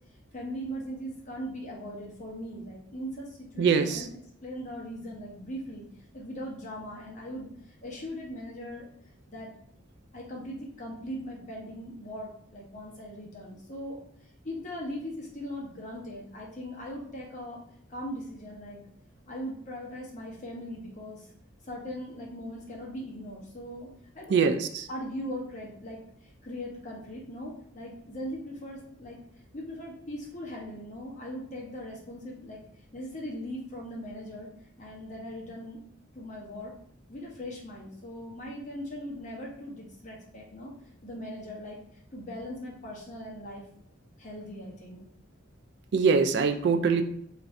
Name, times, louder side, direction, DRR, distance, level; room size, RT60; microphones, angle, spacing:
voice 1, 0.3-5.8 6.1-8.9 9.3-9.5 10.1-14.0 14.4-17.6 17.9-18.8 19.3-21.3 21.6-23.9 24.1-24.5 24.9-29.2 29.5-32.6 32.9-34.5 34.8-35.8 36.1-36.7 37.1-40.7 41.0-41.8 42.1-43.6 44.2-45.1 46.7-47.0, equal, 40° left, -3 dB, 0.9 m, -39 dB
voice 2, 3.6-4.1 24.3-24.8 45.9-47.0, right 5 dB, 60° right, 8 dB, 0.3 m, -23 dB
2.6 x 2.5 x 3.2 m, 0.68 s
head